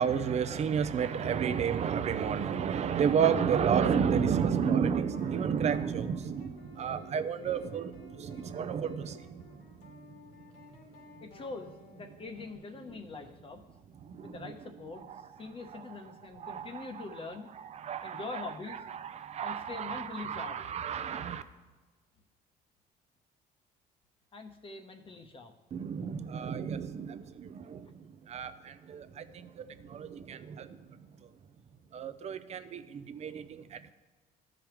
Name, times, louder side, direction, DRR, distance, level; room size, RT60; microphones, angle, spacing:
voice 1, 0.0-9.6 14.0-14.5 16.4-17.0 17.8-18.4 18.9-21.4 25.7-30.8 31.9-33.9, right 7 dB, 40° right, 12 dB, 0.5 m, -31 dB
sound 1, 5.1-12.6, left 4 dB, 90° left, 2.2 m, -55 dB
voice 2, 11.2-13.6 14.2-15.1 15.4-17.5 18.0-18.8 19.4-20.7 21.1-21.2 24.3-25.5 27.8-27.9, left 3 dB, 30° left, 5 dB, 0.8 m, -43 dB
13.0 x 5.1 x 3.0 m, 1.3 s
cardioid pair, 110°, 17 cm